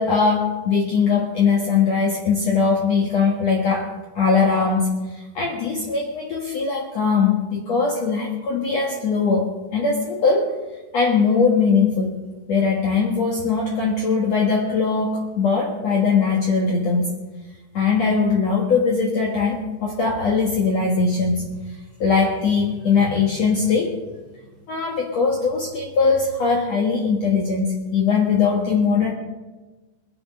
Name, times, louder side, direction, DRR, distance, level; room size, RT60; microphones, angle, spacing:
voice 1, 0.0-10.5 10.9-12.2 12.5-17.1 17.7-21.5 22.0-23.9 24.7-29.1, left 5 dB, 90° left, -1 dB, 1.4 m, -20 dB
22.5 x 8.8 x 5.2 m, 1.2 s
omnidirectional pair, 5.6 m